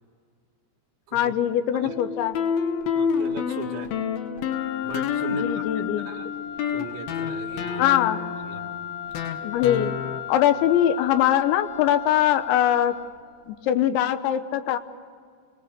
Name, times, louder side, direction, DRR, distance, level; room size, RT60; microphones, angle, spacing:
voice 1, 1.1-2.4 5.3-6.1 7.8-8.2 9.4-10.0 10.3-13.0 13.5-14.8, left 11 dB, 85° left, 11 dB, 3.2 m, -22 dB
sound 1, 1.9-10.2, left 7 dB, 70° left, 2.6 m, -29 dB
voice 2, 2.9-3.9 4.8-6.3 6.7-8.0 8.5-8.7, right 5 dB, 80° right, 1 dB, 4.3 m, -38 dB
Wind instrument woodwind instrument, 4.5-13.2, left 10 dB, 50° left, 2.1 m, -36 dB
27.0 x 20.5 x 6.7 m, 2.1 s
omnidirectional pair, 5.2 m